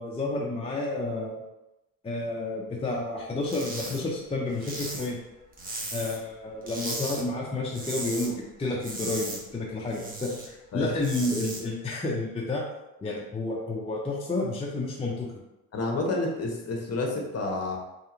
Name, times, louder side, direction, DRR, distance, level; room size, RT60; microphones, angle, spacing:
voice 1, 0.0-1.4 2.0-5.2 5.9-12.6 13.0-15.3, left 2 dB, 15° left, -3 dB, 0.6 m, -30 dB
sound 1, 3.4-4.0 4.3-6.3 6.6-7.2 7.5-8.3 8.6-10.5 10.8-11.6, right 1 dB, 20° right, 1.1 m, -37 dB
voice 2, 15.7-17.8, left 2 dB, 40° left, 1 dB, 1.0 m, -29 dB
3.4 x 2.8 x 3.8 m, 0.96 s
supercardioid pair, 90°, 40 cm